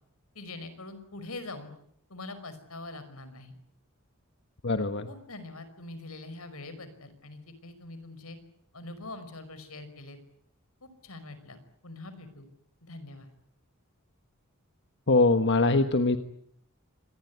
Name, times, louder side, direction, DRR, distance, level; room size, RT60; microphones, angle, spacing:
voice 1, 0.3-1.7 2.1-3.5 5.1-8.4 8.7-10.2 10.8-12.5 12.8-13.3, left 2 dB, 85° left, 12 dB, 5.4 m, -43 dB
voice 2, 4.6-5.1 15.1-16.2, left 3 dB, 55° left, 8 dB, 1.4 m, -22 dB
26.0 x 20.5 x 9.6 m, 0.69 s
head